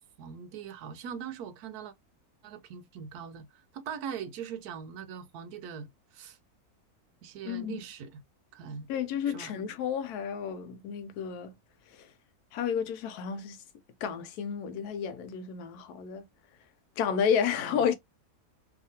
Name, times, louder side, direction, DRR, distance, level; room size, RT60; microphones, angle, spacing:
voice 1, 0.2-1.9 2.4-6.4 7.2-8.2 8.5-8.9 9.3-9.5 17.6-17.8, right 7 dB, 80° right, 1.1 m, -41 dB
voice 2, 7.4-7.8 8.9-11.5 11.9-12.1 12.5-13.6 14.0-16.3 17.0-18.0, left 7 dB, 80° left, 1.1 m, -31 dB
2.8 x 2.5 x 2.7 m
omnidirectional pair, 1.6 m